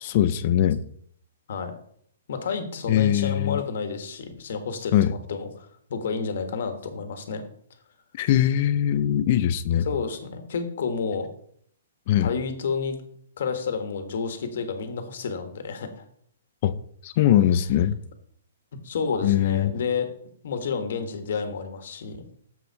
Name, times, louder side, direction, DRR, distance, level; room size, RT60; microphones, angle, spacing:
voice 1, 0.0-0.8 2.9-3.6 4.9-5.1 8.1-9.9 12.1-12.3 16.6-16.7 17.0-18.0 19.2-19.8, left 11 dB, 45° left, 0.5 m, -21 dB
voice 2, 2.3-7.4 9.8-11.3 12.2-13.0 13.4-16.0 18.7-20.1 20.4-22.2, left 5 dB, 65° left, 1.5 m, -30 dB
7.3 x 6.8 x 4.7 m
hypercardioid pair, 145°, 0 cm